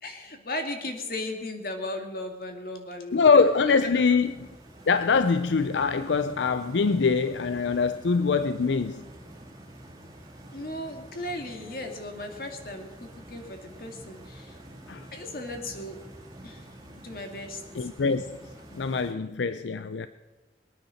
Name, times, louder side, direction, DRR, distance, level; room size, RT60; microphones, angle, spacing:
voice 1, 0.0-3.3 3.8-4.0 4.8-4.9 10.5-12.9 13.3-14.6 15.1-16.0 16.4-16.6 17.0-17.9, left 1 dB, 55° left, 2.1 m, -36 dB
voice 2, 3.1-4.5 4.9-9.0 14.9-15.1 17.7-18.4 18.7-20.1, left 5 dB, 85° left, 0.5 m, -23 dB
Stream, 3.1-19.1, right 1 dB, 20° right, 2.3 m, -47 dB
21.5 x 9.4 x 6.4 m
head